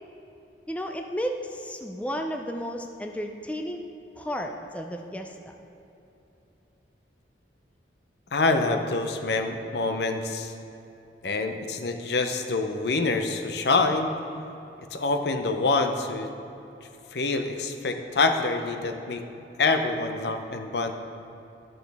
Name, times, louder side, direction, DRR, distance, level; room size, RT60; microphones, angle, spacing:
voice 1, 0.7-3.8 4.2-5.4, equal, 10° left, 3 dB, 0.4 m, -33 dB
voice 2, 8.3-10.5 11.2-14.1 14.9-16.3 17.1-19.2 19.6-20.9, left 3 dB, 65° left, 6 dB, 0.6 m, -26 dB
12.0 x 6.2 x 3.4 m, 2.9 s
head